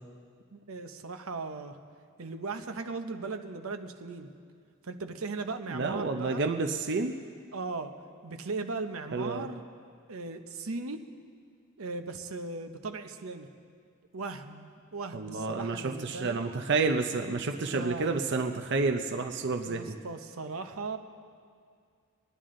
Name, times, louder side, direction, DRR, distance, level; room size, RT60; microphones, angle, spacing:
voice 1, 0.5-1.8 2.2-4.3 4.8-6.4 7.5-7.9 8.2-9.6 10.1-11.1 11.8-13.5 14.1-16.5 17.7-18.1 19.6-21.0, right 3 dB, 90° right, 7 dB, 0.8 m, -38 dB
voice 2, 5.7-7.2 9.1-9.5 15.1-20.0, right 3 dB, 55° right, 5 dB, 0.6 m, -30 dB
22.0 x 10.5 x 3.8 m, 2.2 s
head